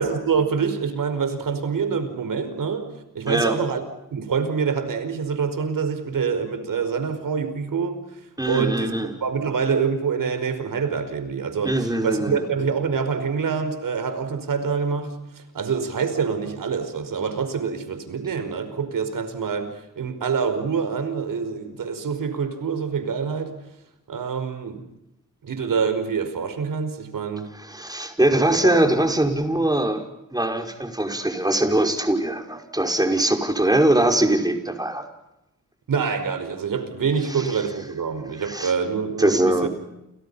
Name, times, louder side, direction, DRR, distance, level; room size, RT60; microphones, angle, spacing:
voice 1, 0.0-2.9 3.1-3.8 4.1-8.0 8.5-8.9 9.2-23.5 24.1-24.8 25.4-27.5 28.5-28.9 35.9-39.7, right 6 dB, 80° right, 10 dB, 5.2 m, -26 dB
voice 2, 3.3-3.6 8.4-9.1 11.6-12.5 27.5-30.0 30.3-35.1 37.3-37.5 38.4-38.7 39.2-39.7, right 1 dB, 10° right, 4 dB, 5.3 m, -22 dB
30.0 x 29.0 x 5.7 m, 0.88 s
cardioid pair, 80°, 32 cm